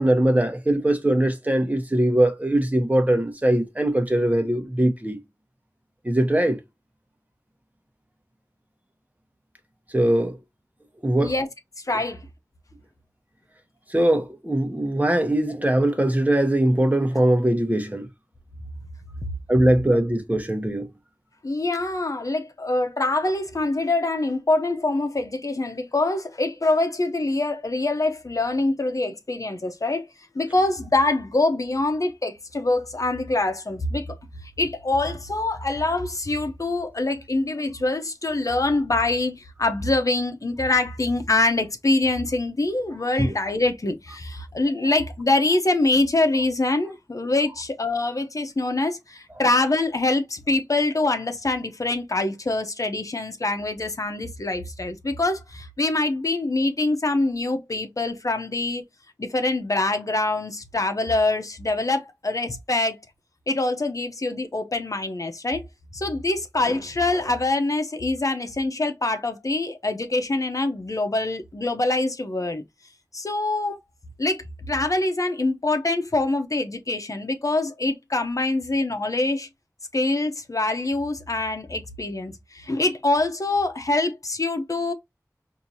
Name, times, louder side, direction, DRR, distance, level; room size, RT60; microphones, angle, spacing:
voice 1, 0.0-5.2 6.0-6.6 9.9-10.3 11.0-11.3 13.9-18.1 19.5-20.9 43.2-43.3, right 1 dB, 25° right, 1.1 m, -21 dB
voice 2, 11.8-12.2 21.4-30.1 30.3-34.2 34.6-58.8 59.2-63.0 63.5-65.6 65.9-72.6 73.1-73.8 74.2-79.5 79.9-84.9, left 2 dB, 60° left, 0.8 m, -24 dB
4.5 x 2.8 x 2.7 m
wide cardioid pair, 45°, 6 cm